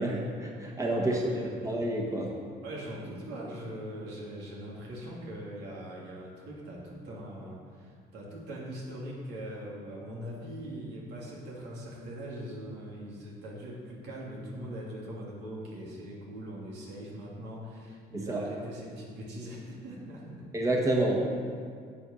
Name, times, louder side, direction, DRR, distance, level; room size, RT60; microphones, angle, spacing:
voice 1, 0.0-1.2 1.6-2.3 18.1-18.4 20.5-21.2, right 1 dB, 20° right, -1 dB, 1.6 m, -28 dB
voice 2, 0.9-1.5 2.6-20.4, right 1 dB, 85° right, -4 dB, 2.8 m, -41 dB
8.6 x 8.1 x 6.4 m, 2.1 s
cardioid pair, 110°, 17 cm